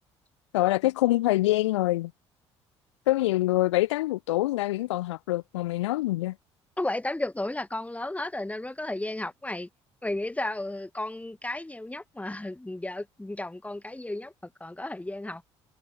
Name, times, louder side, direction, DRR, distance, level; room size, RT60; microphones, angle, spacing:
voice 1, 0.5-2.1 3.1-6.3, left 17 dB, 75° left, 0.4 m, -25 dB
voice 2, 6.8-9.7 10.0-14.3 14.6-15.4, left 1 dB, 10° left, 2.1 m, -33 dB
figure-of-eight pair, 50°, 15 cm